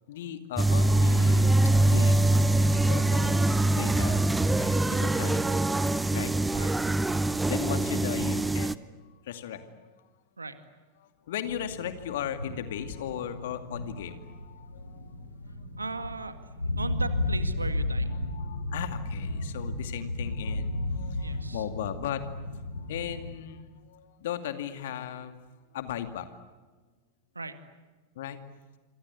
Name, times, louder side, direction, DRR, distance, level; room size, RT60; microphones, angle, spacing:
voice 1, 0.0-4.3 4.6-5.7 6.1-6.6 7.5-10.1 11.0-15.1 18.1-22.3 22.7-25.4 25.7-26.3 28.1-28.4, left 10 dB, 55° left, 9 dB, 2.4 m, -37 dB
sound 1, 0.6-8.7, right 2 dB, 5° right, 0.8 m, -24 dB
voice 2, 3.0-3.4 6.5-6.7 10.4-10.6 15.8-18.1 21.1-21.6 27.4-27.5, right 3 dB, 80° right, 10 dB, 2.0 m, -38 dB
sound 2, 11.4-23.3, left 2 dB, 85° left, 3.4 m, -34 dB
27.0 x 26.5 x 8.3 m, 1.3 s
figure-of-eight pair, 90°, 0 cm